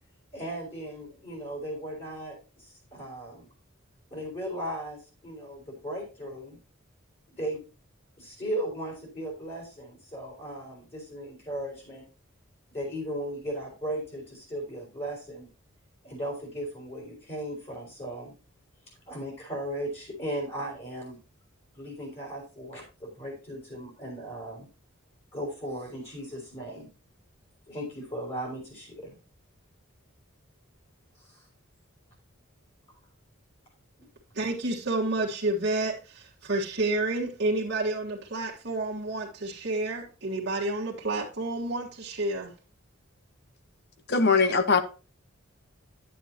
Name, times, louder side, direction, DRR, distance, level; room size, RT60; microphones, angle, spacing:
voice 1, 0.3-3.4 4.1-6.6 7.3-7.6 8.2-12.0 12.7-15.5 16.0-18.3 19.1-21.2 21.7-24.7 25.3-26.9 27.7-29.1 31.3-31.4 34.0-34.1, right 1 dB, 30° left, 4.5 m, -37 dB
voice 2, 34.3-42.5, right 2 dB, 55° right, 1.6 m, -30 dB
voice 3, 44.1-44.8, left 4 dB, 50° left, 1.0 m, -21 dB
10.0 x 9.0 x 2.8 m
head